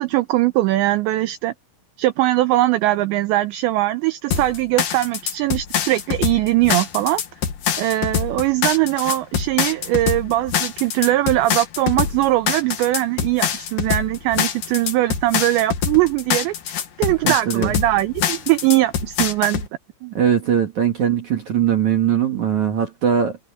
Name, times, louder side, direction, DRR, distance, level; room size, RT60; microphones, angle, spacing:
voice 1, 0.0-1.5 2.0-7.2 7.8-16.5 17.0-19.7, right 16 dB, 75° right, 2.8 m, -20 dB
sound 1, 4.3-19.7, left 8 dB, 55° left, 2.8 m, -24 dB
voice 2, 17.2-17.7 20.0-23.4, right 8 dB, 55° right, 2.4 m, -20 dB
omnidirectional pair, 5.7 m